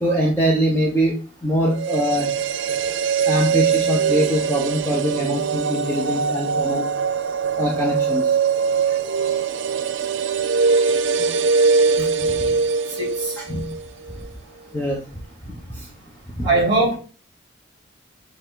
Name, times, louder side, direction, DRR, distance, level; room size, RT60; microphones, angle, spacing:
voice 1, 0.0-1.1 1.4-2.3 3.2-6.8 7.6-8.3 11.2-11.3 12.0-12.6 13.5-13.6 14.7-15.0 15.7-15.9 16.4-16.5, equal, 10° left, -2 dB, 1.2 m, -23 dB
sound 1, 1.7-13.8 14.1-14.2, right 5 dB, 85° right, 0.6 m, -22 dB
voice 2, 13.0-13.3 16.4-17.0, right 2 dB, 25° right, -1 dB, 3.5 m, -20 dB
7.4 x 3.9 x 3.9 m, 0.36 s
head